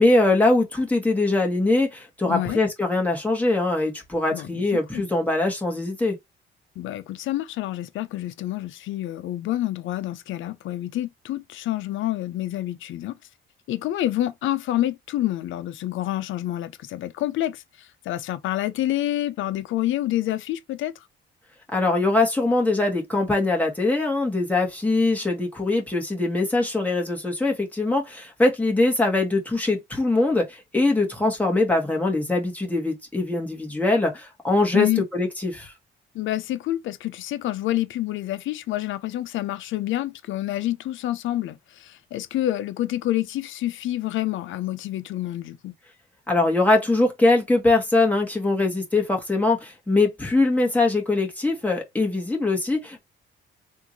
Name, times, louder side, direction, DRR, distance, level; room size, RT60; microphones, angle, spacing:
voice 1, 0.0-6.2 21.7-35.7 46.3-53.0, left 2 dB, 5° left, 1.7 m, -22 dB
voice 2, 2.2-2.6 4.3-5.0 6.8-13.2 13.7-20.9 34.7-35.1 36.1-45.7, left 14 dB, 80° left, 0.6 m, -28 dB
3.5 x 2.6 x 3.0 m
cardioid pair, 90°, 20 cm